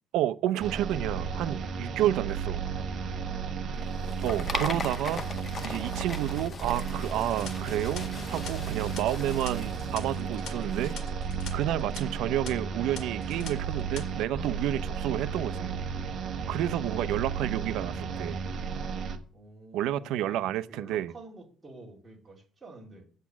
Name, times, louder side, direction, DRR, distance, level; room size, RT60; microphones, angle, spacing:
voice 1, 0.1-2.6 4.2-5.2 5.6-10.9 11.5-15.7 16.5-18.4 19.7-21.1, right 12 dB, 75° right, 0.6 m, -30 dB
sound 1, 0.6-19.2, right 6 dB, 40° right, 1.3 m, -33 dB
sound 2, 3.8-10.9, left 5 dB, 30° left, 0.6 m, -40 dB
sound 3, 7.3-11.5 11.8-12.0 12.5-12.6 13.0-13.5 13.8-14.0, left 7 dB, 70° left, 2.0 m, -44 dB
voice 2, 19.3-23.1, right 2 dB, 10° right, 2.7 m, -50 dB
8.2 x 7.4 x 7.3 m
cardioid pair, 165°, 0 cm